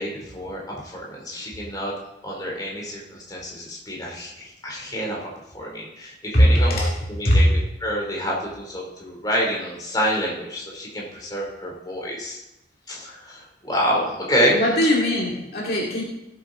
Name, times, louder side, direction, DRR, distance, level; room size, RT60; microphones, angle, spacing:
voice 1, 0.0-1.9 2.2-5.2 5.5-12.4 12.9-14.6, equal, 20° left, -2 dB, 2.6 m, -27 dB
voice 2, 6.3-7.0 7.2-7.5 14.5-16.0, equal, 50° left, -3 dB, 2.2 m, -19 dB
17.0 x 7.9 x 3.7 m, 0.92 s
head